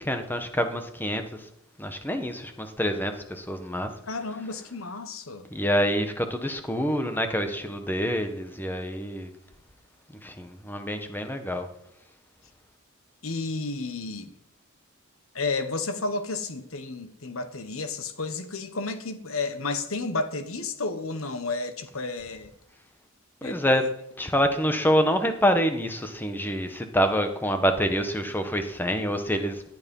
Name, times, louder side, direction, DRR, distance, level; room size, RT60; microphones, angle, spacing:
voice 1, 0.0-1.5 1.8-3.9 5.5-9.3 10.2-11.7 23.4-23.8 24.2-29.6, equal, 10° left, 1.3 m, -26 dB
voice 2, 4.0-5.5 13.2-14.3 15.3-22.5 23.4-23.6, left 3 dB, 70° left, 1.4 m, -32 dB
17.5 x 11.0 x 5.5 m
head